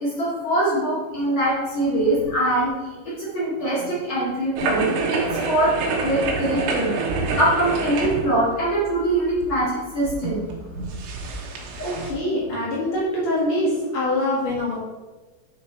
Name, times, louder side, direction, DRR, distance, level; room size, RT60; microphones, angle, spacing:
voice 1, 0.0-2.7 3.2-5.7 6.0-6.9 7.3-10.5 10.7-10.8, right 1 dB, 45° left, -7 dB, 1.7 m, -23 dB
sound 1, 4.6-12.1, right 4 dB, 80° right, 3.2 m, -27 dB
voice 2, 11.8-14.8, left 1 dB, 75° left, -6 dB, 1.2 m, -24 dB
9.5 x 4.5 x 4.5 m, 1.2 s
omnidirectional pair, 5.1 m